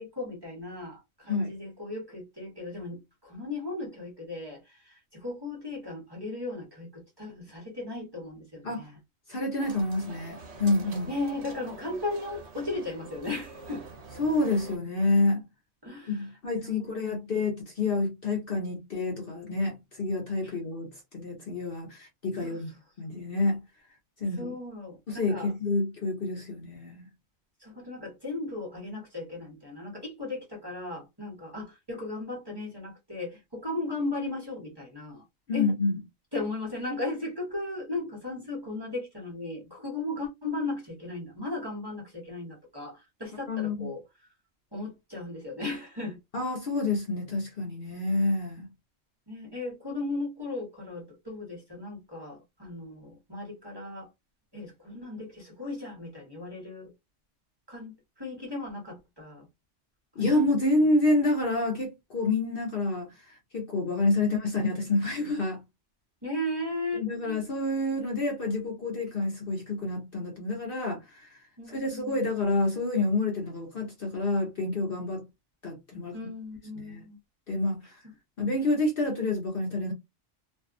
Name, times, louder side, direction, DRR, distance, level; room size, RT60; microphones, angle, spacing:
voice 1, 0.0-9.0 11.1-13.9 15.8-16.3 16.6-17.3 20.4-20.5 22.4-22.6 24.4-25.5 27.6-35.2 35.5-35.7 36.3-44.3 44.7-46.2 49.3-54.1 54.5-56.9 57.7-59.5 60.2-60.3 64.2-64.4 66.2-67.4 71.6-72.2 76.1-77.2, left 2 dB, 20° right, 1.1 m, -36 dB
voice 2, 9.3-11.1 14.2-15.4 16.1-22.7 23.0-23.6 24.2-24.5 25.1-27.1 35.5-35.9 43.5-43.9 46.3-48.7 60.2-65.6 66.9-71.4 71.7-75.2 75.6-76.1 76.8-77.0 77.5-78.0 78.4-79.9, left 2 dB, 50° left, 0.9 m, -28 dB
sound 1, 9.6-14.8, right 3 dB, 65° right, 1.0 m, -45 dB
2.6 x 2.3 x 2.4 m
omnidirectional pair, 1.3 m